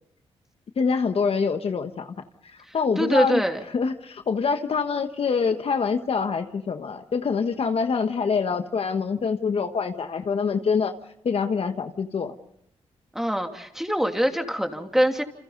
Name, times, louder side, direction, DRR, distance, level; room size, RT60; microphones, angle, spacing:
voice 1, 0.8-2.2 2.4-3.4 3.7-10.9 11.2-12.3, left 5 dB, 60° left, 7 dB, 1.4 m, -25 dB
voice 2, 3.0-3.6 13.1-15.2, equal, 5° right, 4 dB, 2.9 m, -23 dB
28.5 x 27.5 x 4.0 m, 0.75 s
cardioid pair, 70°, 11 cm